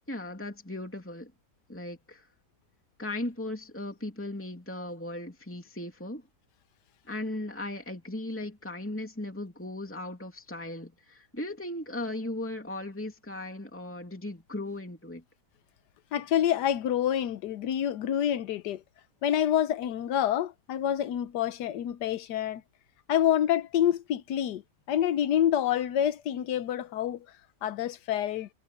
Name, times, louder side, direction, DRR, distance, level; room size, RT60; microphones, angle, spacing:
voice 1, 0.1-1.3 1.7-2.3 3.0-6.2 7.1-15.2, left 1 dB, 5° left, 2.7 m, -37 dB
voice 2, 16.1-18.8 19.2-22.6 23.1-24.6 24.9-27.2 27.6-28.5, left 10 dB, 90° left, 1.4 m, -27 dB
omnidirectional pair, 1.8 m